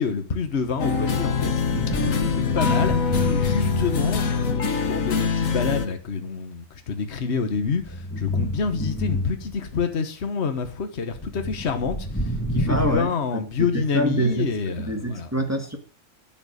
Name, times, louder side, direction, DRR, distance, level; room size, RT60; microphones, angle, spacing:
voice 1, 0.0-1.5 2.0-2.9 3.3-15.3, left 5 dB, 55° left, 1.5 m, -27 dB
sound 1, 0.8-5.9, left 5 dB, 75° left, 1.8 m, -24 dB
sound 2, 1.0-4.6 5.7-5.9 7.2-9.8 11.2-13.0, left 1 dB, 10° left, 2.5 m, -29 dB
voice 2, 12.7-13.4 13.7-14.5 14.8-15.8, right 1 dB, 10° right, 2.0 m, -25 dB
11.0 x 8.1 x 6.4 m
omnidirectional pair, 1.4 m